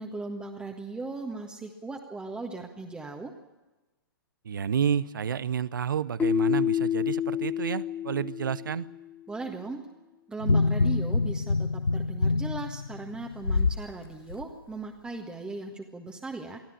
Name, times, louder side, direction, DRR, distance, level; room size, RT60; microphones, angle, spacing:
voice 1, 0.0-3.3 9.3-9.8 10.3-16.6, right 3 dB, 10° right, 2 dB, 1.6 m, -38 dB
voice 2, 4.4-8.9, right 8 dB, 60° right, 19 dB, 0.8 m, -30 dB
Keyboard (musical), 6.2-9.0, left 10 dB, 10° left, 0.6 m, -28 dB
sound 1, 10.4-13.8 14.3-14.4, left 3 dB, 80° left, 0.6 m, -26 dB
23.5 x 15.0 x 8.8 m, 1.1 s
figure-of-eight pair, 110°, 12 cm